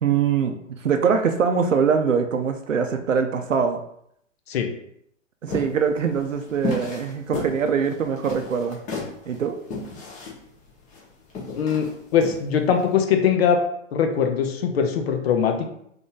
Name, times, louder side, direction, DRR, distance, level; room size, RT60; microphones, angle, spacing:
voice 1, 0.0-3.8 5.4-8.8 9.3-9.6, right 6 dB, 80° right, 6 dB, 0.7 m, -23 dB
sound 1, 5.5-12.9, left 3 dB, 20° left, 1.0 m, -34 dB
voice 2, 11.6-13.6 13.9-15.7, left 7 dB, 50° left, 5 dB, 0.9 m, -21 dB
4.0 x 2.9 x 3.7 m, 0.71 s
figure-of-eight pair, 115°, 38 cm